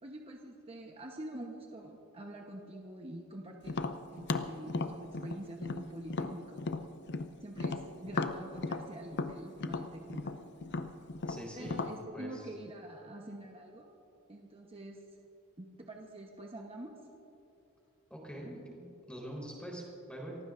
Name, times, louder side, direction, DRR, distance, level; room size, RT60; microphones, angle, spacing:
voice 1, 0.0-3.8 4.1-6.6 7.4-10.4 11.6-13.9 14.3-15.0 15.6-16.9, right 1 dB, 25° right, 0 dB, 1.0 m, -46 dB
Tap, 3.7-7.3 7.6-12.0, left 3 dB, 55° left, 0.7 m, -35 dB
voice 2, 11.3-11.8 12.1-12.5 18.1-20.4, right 1 dB, 5° left, -3 dB, 4.0 m, -44 dB
29.0 x 15.5 x 2.6 m, 2.7 s
head